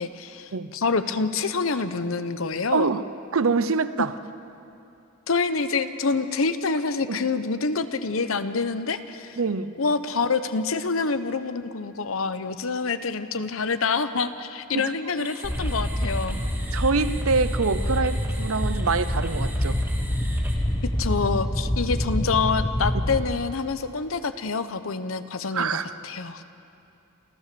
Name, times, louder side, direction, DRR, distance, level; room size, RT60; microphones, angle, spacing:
voice 1, 0.0-2.9 4.0-4.1 5.3-9.4 9.8-16.4 21.0-26.4, left 4 dB, 75° left, 11 dB, 0.9 m, -27 dB
voice 2, 2.7-3.0 3.3-4.1 7.1-7.2 9.4-9.7 14.7-14.9 16.7-19.8 25.5-25.9, right 4 dB, 85° right, 13 dB, 0.7 m, -25 dB
sound 1, 15.2-20.6, right 2 dB, 10° right, 2.1 m, -42 dB
sound 2, 15.4-23.2, equal, 20° left, 1.5 m, -26 dB
28.5 x 14.0 x 6.9 m, 2.7 s
head